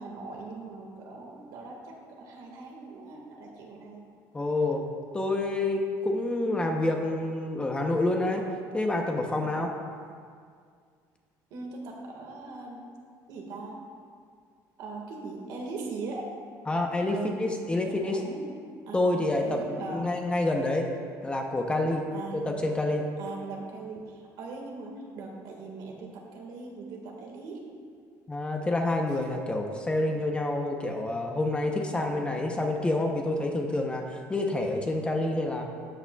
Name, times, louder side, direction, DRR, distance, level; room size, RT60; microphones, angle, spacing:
voice 1, 0.0-4.0 11.5-12.8 13.3-13.8 14.8-16.2 17.1-17.4 17.8-18.5 18.9-19.1 19.4-20.2 22.1-22.5 23.2-27.6, right 3 dB, 70° right, 0 dB, 1.7 m, -40 dB
voice 2, 4.3-4.8 5.1-8.4 8.7-9.7 16.7-18.2 18.9-20.9 21.2-22.1 22.3-23.1 28.3-35.6, left 2 dB, 15° left, 2 dB, 0.7 m, -28 dB
13.0 x 8.6 x 2.3 m, 2.1 s
cardioid pair, 155°, 8 cm